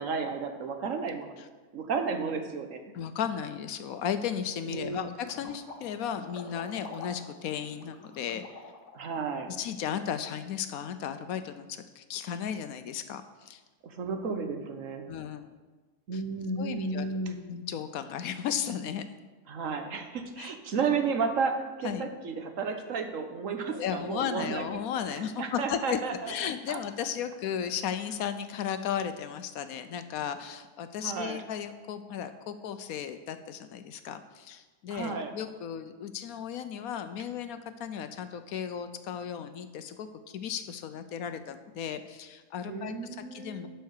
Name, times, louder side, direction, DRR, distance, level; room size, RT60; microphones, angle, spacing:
voice 1, 0.0-1.4 1.7-2.8 4.7-5.1 8.9-9.5 13.8-15.1 16.1-17.4 19.5-24.6 25.1-26.3 26.7-26.8 31.0-31.4 34.9-35.3 42.7-43.7, right 5 dB, 60° right, 6 dB, 1.2 m, -32 dB
voice 2, 2.9-8.4 9.6-13.6 15.1-15.5 16.1-16.2 16.6-17.1 17.5-19.1 20.4-20.5 21.8-22.0 23.7-26.0 26.3-43.7, left 8 dB, 75° left, 10 dB, 1.0 m, -35 dB
sound 1, 5.2-9.1, left 3 dB, 55° left, 1.4 m, -46 dB
11.5 x 4.7 x 6.5 m, 1.3 s
omnidirectional pair, 1.6 m